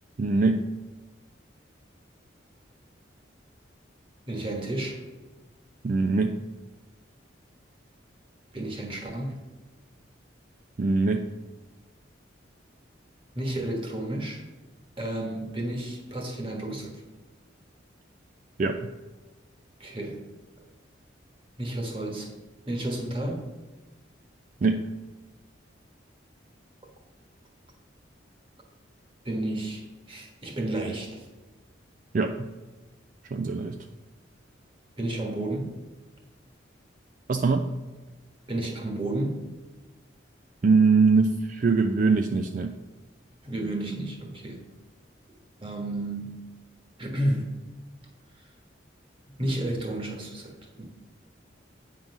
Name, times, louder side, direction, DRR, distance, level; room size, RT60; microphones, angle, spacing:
voice 1, 0.2-0.7 5.8-6.4 10.8-11.3 18.6-18.9 24.6-24.9 32.1-32.5 33.3-33.8 37.3-37.7 40.6-42.8, right 4 dB, 45° right, 5 dB, 0.3 m, -23 dB
voice 2, 4.3-5.0 8.5-9.4 13.3-14.4 15.0-17.0 19.8-20.3 21.6-22.3 22.7-23.5 29.2-31.2 35.0-35.7 38.5-39.4 43.4-44.6 45.6-46.4 47.0-47.5 49.4-50.8, right 1 dB, 30° right, 1 dB, 1.4 m, -31 dB
8.8 x 3.8 x 6.0 m, 1.2 s
head